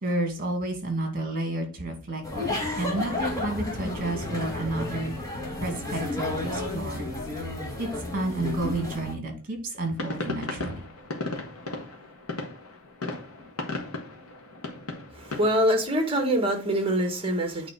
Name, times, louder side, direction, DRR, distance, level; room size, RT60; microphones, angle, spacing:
voice 1, 0.0-5.1 5.6-7.1 7.8-10.9, right 2 dB, 40° right, 4 dB, 2.1 m, -31 dB
sound 1, 2.2-9.1, left 2 dB, 15° left, 1.9 m, -32 dB
sound 2, 9.9-15.6, left 2 dB, 85° left, 1.4 m, -35 dB
voice 2, 15.1-17.7, equal, 25° right, 5 dB, 1.5 m, -24 dB
8.8 x 3.2 x 5.1 m, 0.37 s
head